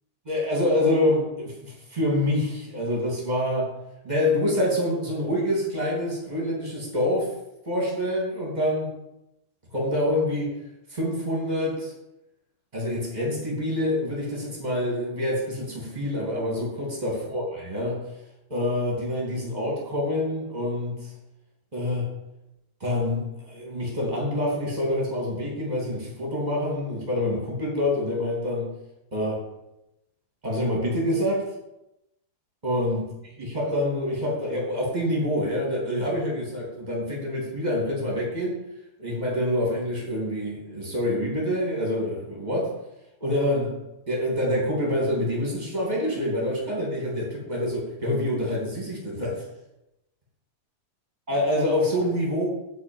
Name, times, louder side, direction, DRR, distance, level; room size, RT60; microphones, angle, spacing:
voice 1, 0.2-3.7 4.0-7.3 7.6-8.9 9.7-10.6 10.9-11.9 12.7-17.4 17.7-18.1 18.5-21.1 21.7-22.1 22.8-28.7 29.1-29.5 30.4-31.5 32.6-33.1 33.4-38.6 39.0-42.8 43.2-43.8 44.1-49.5 51.3-52.5, left 1 dB, 25° right, -3 dB, 0.9 m, -26 dB
10.5 x 4.4 x 7.8 m, 0.89 s
omnidirectional pair, 5.3 m